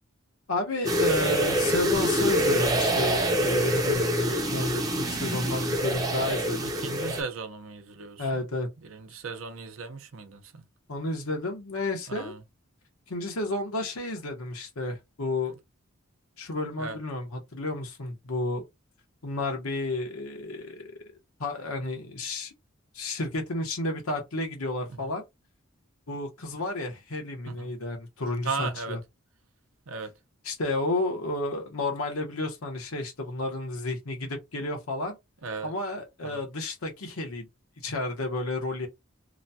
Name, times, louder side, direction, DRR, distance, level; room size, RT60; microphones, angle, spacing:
voice 1, 0.5-6.7 7.0-7.1 8.2-8.7 10.9-12.3 13.1-15.6 16.4-18.6 19.2-20.9 21.4-22.5 22.9-25.2 26.1-29.0 30.4-35.2 35.6-37.5 37.8-38.9, left 2 dB, 90° left, 1.0 m, -31 dB
sound 1, 0.8-7.2, equal, 20° right, 0.6 m, -26 dB
voice 2, 6.6-8.4 8.8-10.6 12.1-12.4 16.8-17.0 24.9-25.1 27.5-27.7 28.4-29.0 29.9-30.1 35.4-35.7 36.2-36.4, right 4 dB, 70° right, 0.7 m, -37 dB
3.0 x 2.2 x 2.7 m
head